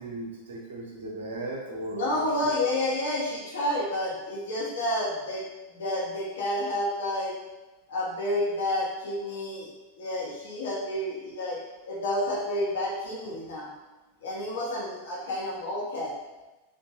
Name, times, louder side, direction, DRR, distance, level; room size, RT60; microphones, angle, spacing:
voice 1, 0.0-2.5, right 2 dB, 65° right, -2 dB, 0.6 m, -37 dB
voice 2, 1.9-5.4 5.7-7.4 7.9-9.7 10.0-11.6 11.9-13.7 14.2-16.1, left 1 dB, 60° left, -5 dB, 0.6 m, -30 dB
2.9 x 2.1 x 2.8 m, 1.1 s
figure-of-eight pair, 90°, 0 cm